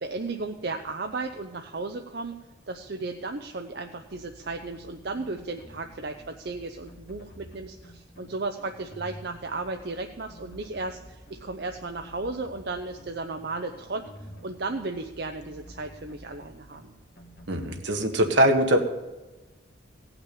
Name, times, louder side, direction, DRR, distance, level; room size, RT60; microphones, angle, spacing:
voice 1, 0.0-2.4 2.7-14.1 14.4-16.9, right 3 dB, 55° right, 5 dB, 0.6 m, -34 dB
sound 1, 4.1-17.8, equal, 50° left, 1.8 m, -49 dB
voice 2, 17.5-18.8, right 1 dB, 75° right, 4 dB, 1.5 m, -22 dB
16.0 x 5.9 x 8.5 m, 1.1 s
head